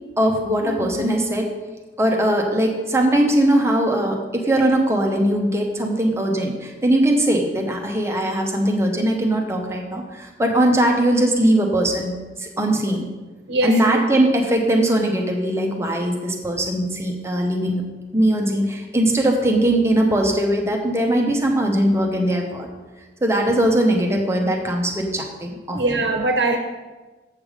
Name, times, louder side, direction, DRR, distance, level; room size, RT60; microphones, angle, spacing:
voice 1, 0.2-1.5 2.0-13.1 13.6-17.9 18.1-22.7 23.2-26.0, right 1 dB, 15° right, 1 dB, 0.9 m, -20 dB
voice 2, 13.5-13.8 25.7-26.6, right 2 dB, 80° right, 4 dB, 0.8 m, -21 dB
7.4 x 6.9 x 5.0 m, 1.2 s
head